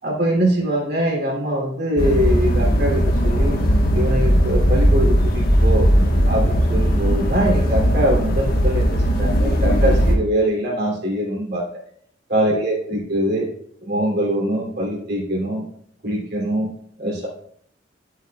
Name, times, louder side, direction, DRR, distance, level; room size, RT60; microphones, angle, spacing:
voice 1, 0.0-3.5 3.9-5.9 6.3-11.6 12.3-13.5 13.8-15.6 16.0-16.7 17.0-17.3, right 1 dB, 55° right, -2 dB, 3.0 m, -23 dB
romania church room tone, 2.0-10.2, equal, 50° left, 1.4 m, -18 dB
11.5 x 7.9 x 2.4 m, 0.66 s
head